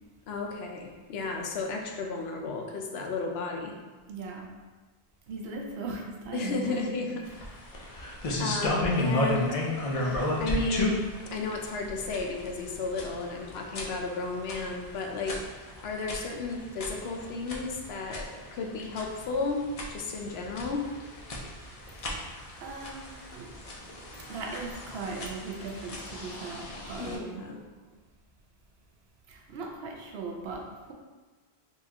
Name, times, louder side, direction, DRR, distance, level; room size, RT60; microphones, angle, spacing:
voice 1, 0.3-3.8 6.3-7.2 8.4-9.6 9.9-11.0 11.3-15.4 15.8-19.6 19.9-20.8 27.0-27.6, left 3 dB, 75° left, 1 dB, 0.8 m, -33 dB
voice 2, 4.1-4.5 5.3-6.8 22.0-22.3 22.6-23.5 24.3-27.5 29.3-30.9, right 3 dB, 80° right, 1 dB, 0.8 m, -39 dB
sound 1, 7.3-27.2, left 1 dB, 45° left, 0.5 m, -34 dB
4.0 x 2.4 x 2.8 m, 1.3 s
omnidirectional pair, 1.1 m